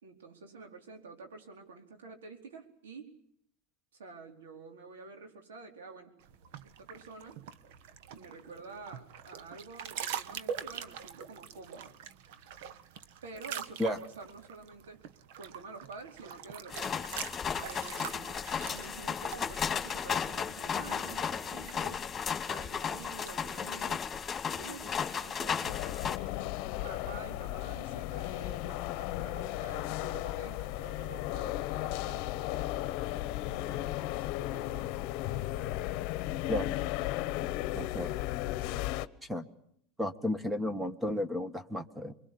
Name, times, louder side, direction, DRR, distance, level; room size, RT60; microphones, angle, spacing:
voice 1, 0.0-3.1 3.9-6.2 6.6-7.4 8.1-11.9 13.2-15.0 15.4-17.1 17.6-18.4 18.7-22.1 22.5-24.1 24.5-26.0 26.8-32.9 33.5-35.0, right 4 dB, 90° right, 4 dB, 4.5 m, -49 dB
sound 1, 6.2-24.4, right 8 dB, 70° right, 1.4 m, -45 dB
sound 2, 16.7-26.2, left 7 dB, 25° left, 2.4 m, -34 dB
sound 3, 25.6-39.1, left 16 dB, 55° left, 1.0 m, -35 dB
voice 2, 37.7-38.2 39.3-39.4 40.0-42.1, left 1 dB, 10° right, 12 dB, 1.4 m, -33 dB
25.0 x 22.5 x 8.6 m, 0.69 s
supercardioid pair, 115°, 0 cm